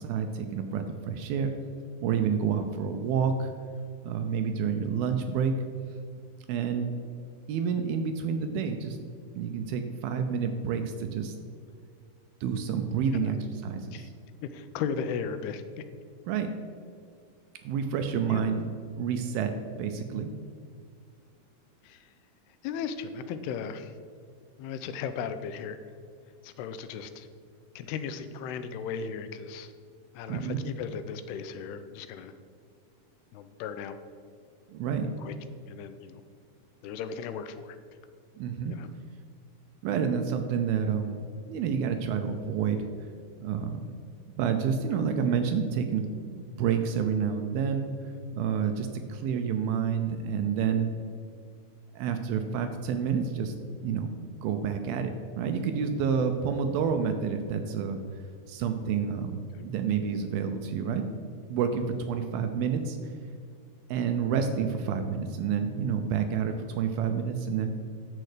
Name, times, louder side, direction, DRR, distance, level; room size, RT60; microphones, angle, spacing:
voice 1, 0.0-1.5 2.0-3.5 4.0-5.6 6.5-6.9 7.5-9.0 9.4-11.3 12.4-14.1 16.3-16.5 17.6-18.6 19.0-19.5 19.8-20.3 30.3-30.6 34.7-35.1 38.4-38.7 39.8-41.2 41.5-42.9 43.4-43.9 44.4-47.9 48.3-50.9 51.9-53.5 53.8-54.1 54.4-58.0 58.5-59.4 59.6-61.2 61.5-63.0 63.9-67.7, right 6 dB, 80° right, 7 dB, 2.3 m, -29 dB
voice 2, 14.4-15.6 18.3-18.4 21.8-22.1 22.6-23.9 24.6-25.8 26.4-27.3 27.8-29.7 30.1-32.3 33.3-34.0 35.2-35.3 35.7-36.2 36.8-37.8 38.7-38.9, left 6 dB, 85° left, 10 dB, 2.5 m, -36 dB
10.5 x 7.6 x 5.0 m, 2.2 s
omnidirectional pair, 4.7 m